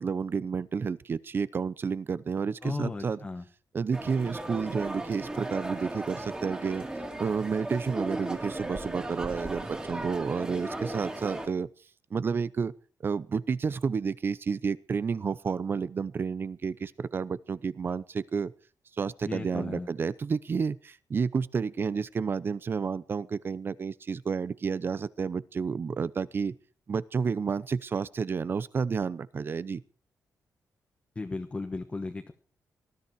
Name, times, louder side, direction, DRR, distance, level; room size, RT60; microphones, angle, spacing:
voice 1, 0.0-3.2 3.7-6.9 7.2-11.7 12.1-12.7 13.0-18.5 19.0-26.5 26.9-29.8, right 5 dB, 35° right, 18 dB, 0.7 m, -30 dB
voice 2, 2.6-3.4 19.3-19.9 31.1-32.3, left 3 dB, 20° left, 5 dB, 1.2 m, -35 dB
sound 1, 3.9-11.5, right 1 dB, 15° right, 2.8 m, -36 dB
20.0 x 13.5 x 4.7 m, 0.39 s
wide cardioid pair, 150°, 6 cm